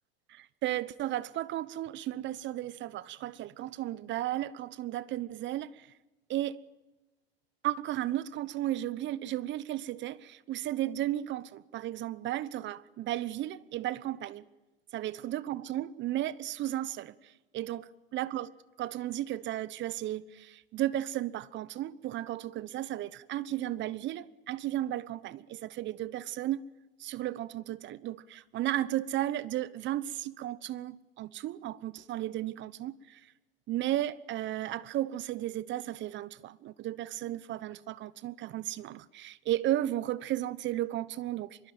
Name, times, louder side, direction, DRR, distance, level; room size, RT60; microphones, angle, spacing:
voice 1, 0.3-5.9 6.3-6.6 7.6-14.4 14.9-17.8 18.1-18.5 18.8-26.6 27.0-33.3 33.7-41.7, right 13 dB, 40° right, 0.9 m, -34 dB
24.5 x 22.5 x 9.1 m
hypercardioid pair, 90°, 30 cm